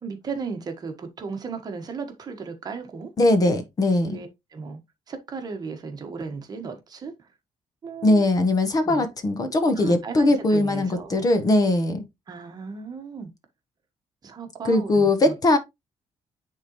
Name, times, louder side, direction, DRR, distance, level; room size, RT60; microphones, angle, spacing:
voice 1, 0.0-3.1 4.0-4.8 5.1-7.1 7.8-8.2 8.8-9.0 9.8-11.2 12.3-13.3 14.2-15.3, right 5 dB, 35° right, 1.3 m, -35 dB
voice 2, 3.2-4.2 8.0-12.0 14.6-15.6, left 2 dB, 30° left, 1.0 m, -20 dB
9.8 x 3.8 x 3.0 m
cardioid pair, 170°, 12 cm